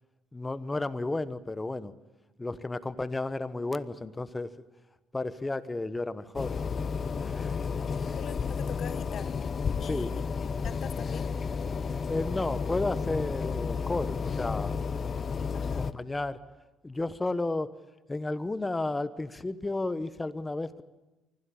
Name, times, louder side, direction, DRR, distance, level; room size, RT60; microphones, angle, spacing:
voice 1, 0.3-1.9 2.4-4.5 5.1-6.9 7.2-7.6 9.8-10.1 12.1-14.8 15.6-16.4 16.8-17.7 18.1-20.8, left 2 dB, 15° left, 14 dB, 1.1 m, -32 dB
sound 1, 6.3-15.9, left 5 dB, 40° left, 0.8 m, -32 dB
voice 2, 8.2-9.4 9.8-10.2 10.6-11.3 15.5-15.9, left 9 dB, 55° left, 14 dB, 1.2 m, -43 dB
24.5 x 16.0 x 8.6 m, 1.1 s
cardioid pair, 95°, 0 cm